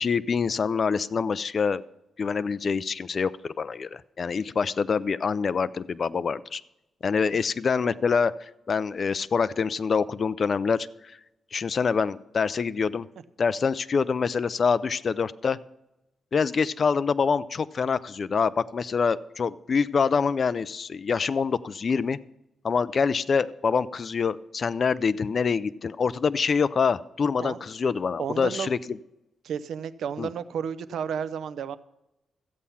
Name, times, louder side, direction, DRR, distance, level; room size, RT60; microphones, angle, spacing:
voice 1, 0.0-1.8 2.2-6.6 7.0-10.9 11.5-13.1 13.4-15.6 16.3-22.2 22.6-29.0 30.2-30.3, left 5 dB, 45° left, 15 dB, 0.4 m, -25 dB
voice 2, 28.2-28.7 29.4-31.8, right 7 dB, 80° right, 13 dB, 0.7 m, -32 dB
14.5 x 8.5 x 5.6 m, 0.91 s
cardioid pair, 110°, 0 cm